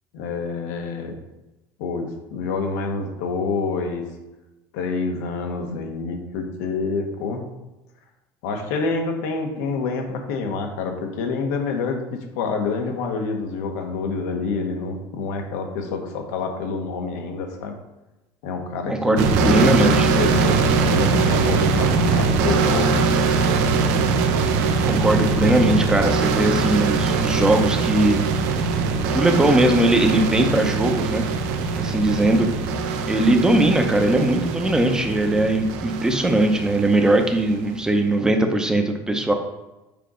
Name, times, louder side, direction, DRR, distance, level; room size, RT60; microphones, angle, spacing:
voice 1, 0.1-1.2 1.8-4.0 4.7-7.4 8.4-17.8 18.4-23.1, left 4 dB, 85° left, 3 dB, 1.2 m, -27 dB
voice 2, 18.9-20.1 24.9-28.2 29.1-31.3 31.7-32.5 33.1-39.3, right 1 dB, 10° right, 4 dB, 0.8 m, -20 dB
sound 1, 19.2-37.8, right 4 dB, 90° right, 0.8 m, -22 dB
6.7 x 4.8 x 3.9 m, 1.0 s
cardioid pair, 135°, 9 cm